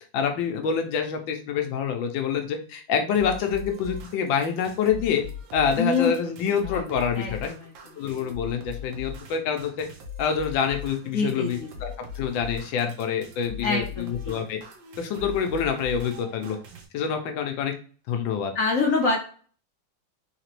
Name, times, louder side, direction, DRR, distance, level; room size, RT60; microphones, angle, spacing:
voice 1, 0.1-5.2 5.5-7.5 8.0-9.9 10.2-11.9 12.2-14.6 15.0-16.6 16.9-17.7 18.1-18.5, left 7 dB, 85° left, 5 dB, 1.4 m, -26 dB
sound 1, 3.1-16.9, left 6 dB, 80° right, 1.5 m, -40 dB
voice 2, 5.8-6.4 6.6-7.7 11.1-11.7 13.6-14.4 18.5-19.2, left 4 dB, 55° left, -2 dB, 1.0 m, -26 dB
4.0 x 2.9 x 3.0 m, 0.41 s
omnidirectional pair, 2.1 m